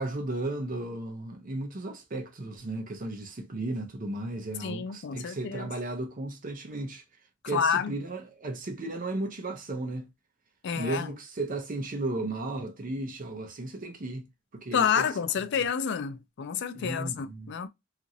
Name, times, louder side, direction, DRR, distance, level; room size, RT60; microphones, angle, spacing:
voice 1, 0.0-7.0 7.4-10.1 10.8-14.3 14.5-15.1 16.7-17.5, right 2 dB, 45° right, 0.6 m, -35 dB
voice 2, 4.6-5.7 7.5-7.9 10.6-11.1 14.7-17.7, left 7 dB, 60° left, 0.4 m, -29 dB
2.9 x 2.5 x 2.6 m
head